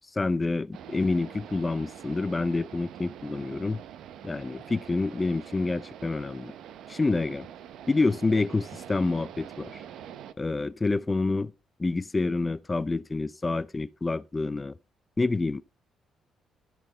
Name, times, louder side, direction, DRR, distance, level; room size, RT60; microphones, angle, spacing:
voice 1, 0.2-3.8 4.2-6.5 6.9-7.5 7.9-9.7 10.4-11.5 11.8-14.7 15.2-15.6, left 3 dB, 25° left, 0.5 m, -27 dB
sound 1, 0.7-10.3, right 9 dB, 80° right, 0.7 m, -45 dB
14.5 x 6.0 x 3.9 m
cardioid pair, 90°, 0 cm